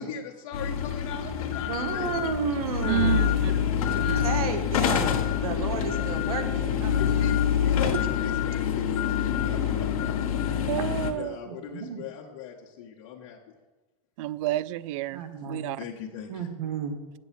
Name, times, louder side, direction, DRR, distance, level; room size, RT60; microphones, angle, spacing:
voice 1, 0.0-2.1 3.5-4.2 6.9-10.4 11.1-13.6 15.8-16.5, left 8 dB, 55° left, -2 dB, 1.5 m, -40 dB
sound 1, 0.5-11.1, left 8 dB, 80° left, 1.3 m, -26 dB
voice 2, 1.7-3.5 3.9-7.2 11.5-12.0 15.1-15.8 16.3-17.0, right 6 dB, 90° right, 7 dB, 1.6 m, -33 dB
voice 3, 2.8-3.5 3.9-4.4 10.7-11.4 14.2-15.8, right 14 dB, 60° right, 19 dB, 0.5 m, -30 dB
8.2 x 7.5 x 7.6 m, 1.2 s
supercardioid pair, 135°, 18 cm